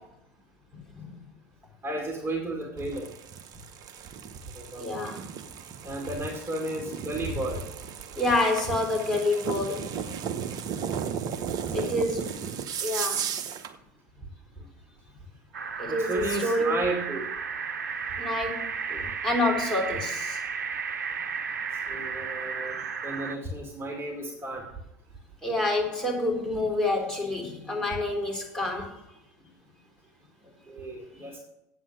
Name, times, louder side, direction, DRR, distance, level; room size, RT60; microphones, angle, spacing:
voice 1, 1.8-3.1 4.6-4.9 5.8-7.6 11.7-12.0 15.9-17.2 21.9-22.7 23.0-24.6 30.7-31.4, right 2 dB, 25° right, 2.2 m, -33 dB
sound 1, 2.8-13.8, right 8 dB, 45° right, 0.9 m, -35 dB
voice 2, 4.8-5.2 8.2-9.9 10.2-10.3 11.7-12.4 12.8-13.2 15.8-16.7 18.2-20.4 25.4-29.0 31.1-31.2, left 2 dB, 5° left, 3.3 m, -28 dB
sound 2, 15.5-23.4, right 6 dB, 75° right, 0.7 m, -33 dB
8.5 x 7.5 x 6.4 m
figure-of-eight pair, 75°, 9 cm